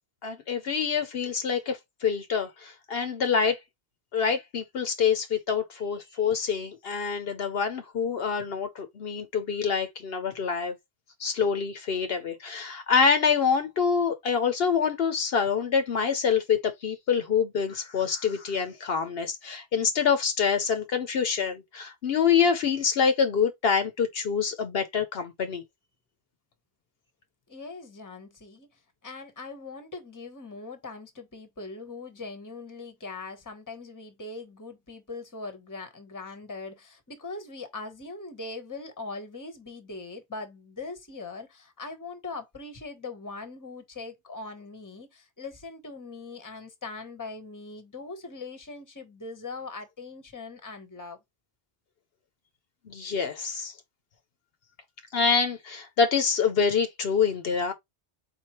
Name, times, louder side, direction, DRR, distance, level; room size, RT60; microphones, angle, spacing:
voice 1, 0.2-3.6 4.1-10.7 11.2-25.6 52.9-53.7 55.1-57.7, left 6 dB, 70° left, 0.9 m, -26 dB
voice 2, 27.5-28.7 29.0-51.2, left 3 dB, 20° left, 0.9 m, -41 dB
4.6 x 3.9 x 2.9 m
omnidirectional pair, 1.1 m